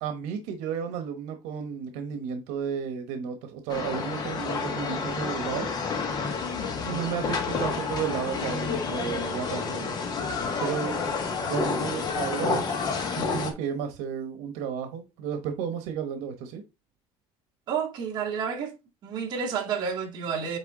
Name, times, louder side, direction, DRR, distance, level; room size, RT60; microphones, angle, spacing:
voice 1, 0.0-5.7 6.8-10.0 10.6-11.0 11.5-16.6, right 7 dB, 85° right, 1.1 m, -33 dB
sound 1, 3.7-13.5, left 4 dB, 35° left, 1.6 m, -29 dB
voice 2, 17.7-18.7 19.0-20.6, right 6 dB, 40° right, 2.2 m, -30 dB
8.7 x 3.4 x 3.7 m
cardioid pair, 155°, 11 cm